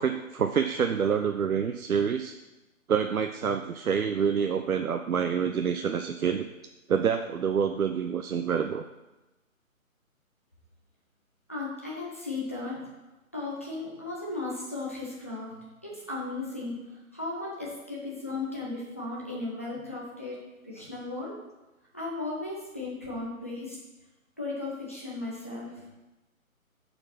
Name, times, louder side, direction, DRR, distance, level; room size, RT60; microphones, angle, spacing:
voice 1, 0.0-2.4 2.9-6.5 6.9-8.8, right 7 dB, 80° right, 6 dB, 0.6 m, -27 dB
voice 2, 11.5-12.9 13.3-16.7 17.1-21.3 21.9-23.8 24.4-25.9, left 3 dB, 10° left, -7 dB, 0.5 m, -36 dB
6.6 x 4.5 x 5.6 m, 1.1 s
figure-of-eight pair, 145°, 42 cm